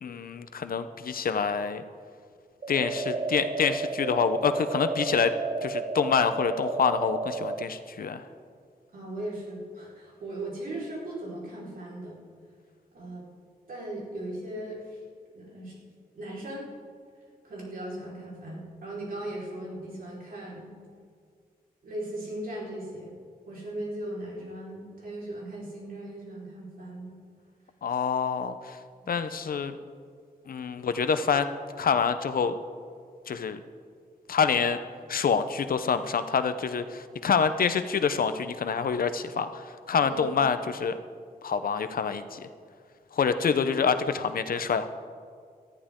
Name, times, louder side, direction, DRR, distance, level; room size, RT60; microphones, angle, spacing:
voice 1, 0.0-1.8 2.7-5.3 5.6-8.2 27.8-28.8 29.1-29.8 30.5-31.5 31.8-32.5 33.3-33.6 34.3-34.8 35.1-41.0 41.4-42.4 43.1-44.9, left 6 dB, 65° left, 10 dB, 0.8 m, -26 dB
sound 1, 2.6-7.6, right 3 dB, 35° right, 0.6 m, -32 dB
voice 2, 8.9-12.2 12.9-13.3 13.7-15.0 15.3-15.8 16.1-16.7 17.4-20.7 21.8-23.1 23.5-27.2 40.0-40.3, right 1 dB, 65° right, -5 dB, 4.6 m, -38 dB
19.0 x 13.5 x 3.8 m, 2.1 s
wide cardioid pair, 140°, 16 cm